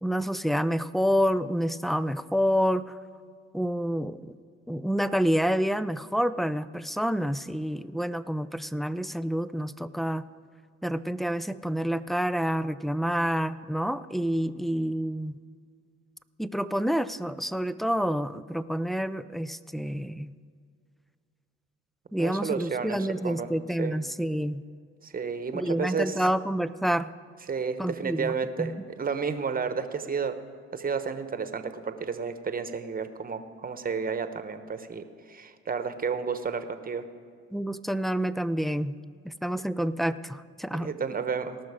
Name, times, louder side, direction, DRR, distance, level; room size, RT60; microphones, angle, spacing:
voice 1, 0.0-2.9 3.5-4.4 4.7-10.3 10.8-15.4 16.4-20.3 22.1-24.6 25.5-27.1 27.8-28.7 37.5-38.9 39.2-40.9, equal, ahead, 16 dB, 0.3 m, -28 dB
voice 2, 22.2-23.5 23.8-24.0 25.0-26.3 27.5-30.4 30.7-37.1 40.8-41.6, right 5 dB, 30° right, 9 dB, 1.0 m, -32 dB
18.5 x 6.2 x 4.9 m, 2.2 s
supercardioid pair, 65°, 31 cm